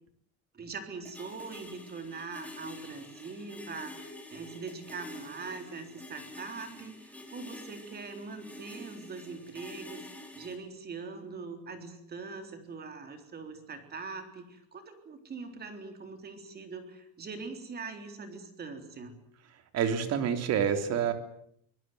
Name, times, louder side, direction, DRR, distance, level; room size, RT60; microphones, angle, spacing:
voice 1, 0.5-10.0 10.3-19.2, right 4 dB, 25° right, 7 dB, 3.7 m, -42 dB
sound 1, 1.0-10.6, left 1 dB, 5° left, 4.4 m, -47 dB
voice 2, 19.7-21.1, right 8 dB, 45° right, 8 dB, 3.4 m, -27 dB
25.0 x 20.5 x 9.4 m, 0.67 s
cardioid pair, 170°, 36 cm